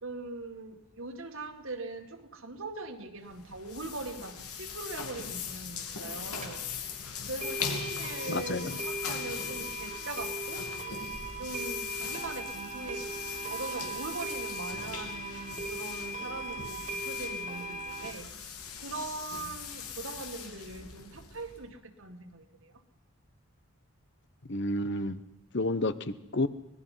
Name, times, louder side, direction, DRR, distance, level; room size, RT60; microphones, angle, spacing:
voice 1, 0.0-6.7 7.2-10.7 11.4-13.1 13.4-22.8, right 3 dB, 65° right, 6 dB, 2.1 m, -41 dB
sound 1, 3.2-21.7, left 6 dB, 85° left, 2.9 m, -40 dB
sound 2, 6.1-6.2 6.4-6.5 6.9-7.0 7.4-18.1, right 1 dB, 30° right, 1.2 m, -38 dB
voice 2, 8.3-8.8 24.5-25.2 25.5-26.5, left 2 dB, 50° left, 14 dB, 0.9 m, -30 dB
25.0 x 19.5 x 5.7 m, 0.86 s
head